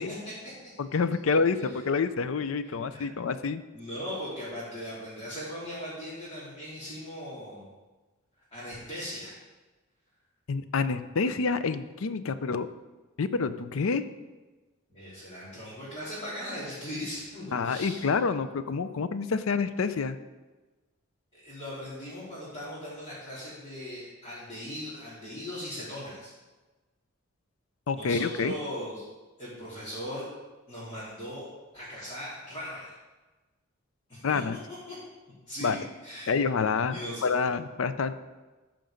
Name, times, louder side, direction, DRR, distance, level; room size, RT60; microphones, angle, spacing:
voice 1, 0.0-0.7 2.6-3.1 3.7-7.7 8.5-9.4 14.9-18.1 21.3-26.3 27.9-29.0 29.4-30.3 30.7-31.5 31.7-32.9 34.1-34.4 34.9-35.0 35.5-36.4 36.9-37.3, equal, 25° left, -12 dB, 3.5 m, -39 dB
voice 2, 0.8-3.6 10.5-12.7 13.2-14.0 17.5-20.2 27.9-28.5 34.2-34.6 35.6-35.8 36.3-38.1, left 4 dB, 70° left, 12 dB, 0.5 m, -28 dB
13.5 x 5.2 x 5.2 m, 1.2 s
head